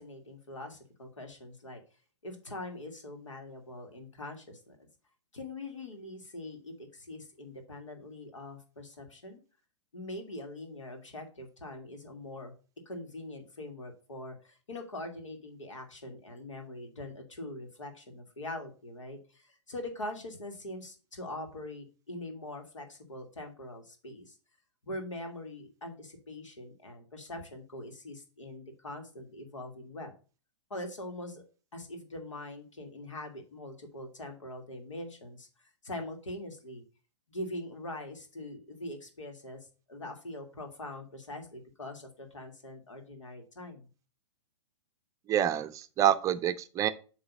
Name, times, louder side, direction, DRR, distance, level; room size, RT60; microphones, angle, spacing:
voice 1, 0.0-1.8 2.2-4.9 5.3-9.4 9.9-12.5 12.9-24.4 24.8-30.1 30.7-31.4 31.7-35.5 35.8-36.8 37.3-39.6 39.9-43.9, left 1 dB, 85° left, 1.9 m, -43 dB
voice 2, 45.3-46.9, right 10 dB, 20° right, 0.5 m, -27 dB
7.8 x 3.1 x 5.8 m
hypercardioid pair, 120°, 16 cm